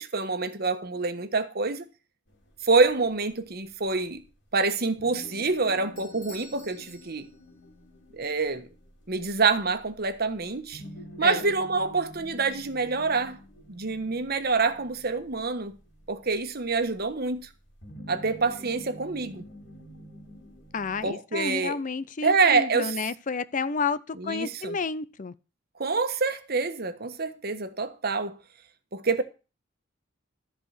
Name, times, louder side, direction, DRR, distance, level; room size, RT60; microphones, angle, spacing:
voice 1, 0.0-1.9 2.6-4.2 4.5-7.3 8.1-8.7 9.1-10.8 11.2-13.4 13.7-15.8 16.1-17.5 18.1-19.5 21.0-21.8 22.2-23.0 24.2-24.8 25.8-28.4 28.9-29.2, right 4 dB, 55° right, 1.3 m, -26 dB
sound 1, 2.3-21.1, equal, 70° left, 3.2 m, -48 dB
Bell / Doorbell, 6.0-7.7, equal, 15° left, 4.0 m, -50 dB
voice 2, 20.7-25.3, left 5 dB, 45° left, 0.6 m, -31 dB
14.0 x 4.8 x 8.1 m
head